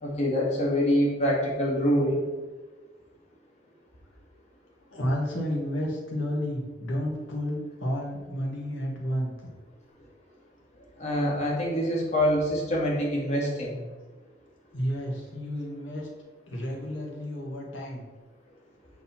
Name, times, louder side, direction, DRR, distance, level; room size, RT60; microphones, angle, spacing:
voice 1, 0.0-2.2 11.0-13.8, equal, 35° left, -4 dB, 2.0 m, -25 dB
voice 2, 4.9-9.5 14.7-16.1 16.5-18.0, equal, 85° left, -2 dB, 1.9 m, -31 dB
8.1 x 4.0 x 4.4 m, 1.3 s
head